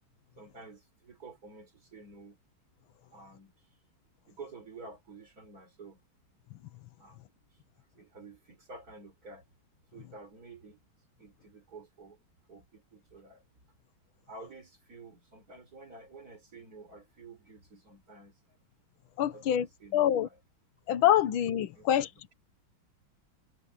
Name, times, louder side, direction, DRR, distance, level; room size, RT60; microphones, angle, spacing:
voice 1, 0.4-2.4 3.1-3.7 4.3-6.0 7.0-7.2 8.0-9.5 9.9-10.8 11.2-12.2 12.5-13.4 14.3-18.6 19.3-20.4 21.7-22.2, right 3 dB, 45° right, 4.2 m, -50 dB
voice 2, 19.2-19.7 19.9-20.3 20.9-22.3, left 11 dB, 90° left, 1.8 m, -26 dB
omnidirectional pair, 2.2 m